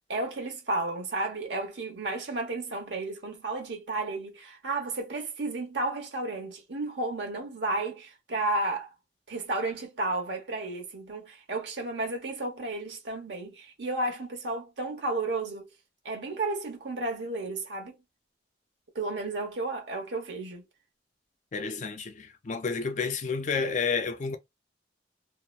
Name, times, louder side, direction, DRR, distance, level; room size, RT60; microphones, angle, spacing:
voice 1, 0.1-8.9 9.3-15.7 16.0-18.0 18.9-20.6, right 2 dB, 75° right, 1.0 m, -32 dB
voice 2, 21.5-24.4, left 5 dB, 40° left, 0.4 m, -30 dB
2.8 x 2.1 x 2.3 m
head